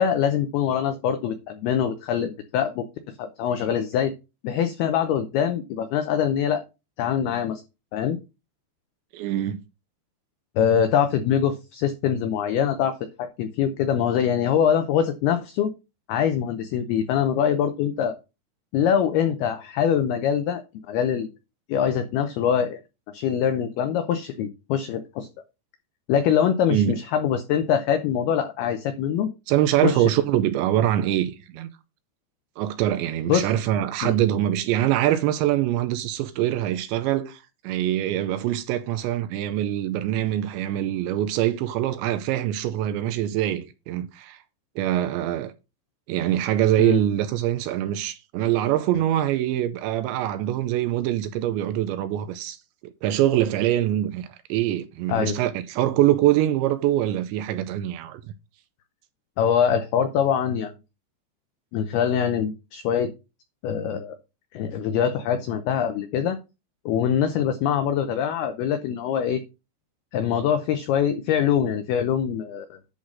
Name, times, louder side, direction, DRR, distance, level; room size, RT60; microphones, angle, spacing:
voice 1, 0.0-4.1 4.4-6.6 7.0-7.6 7.9-8.2 10.6-15.7 16.1-18.2 18.7-20.6 20.9-21.3 21.7-22.8 23.1-25.3 26.1-29.3 29.8-30.0 33.3-33.5 34.0-34.1 46.8-47.0 55.1-55.4 59.4-60.7 61.7-63.1 63.6-64.2 64.5-66.4 66.9-69.4 70.1-72.8, left 8 dB, 85° left, 2.2 m, -23 dB
voice 2, 9.1-9.6 26.7-27.0 29.5-31.7 32.6-44.4 44.8-45.5 46.1-52.6 53.0-58.2, right 12 dB, 80° right, 2.7 m, -24 dB
10.5 x 4.0 x 6.2 m
omnidirectional pair, 5.6 m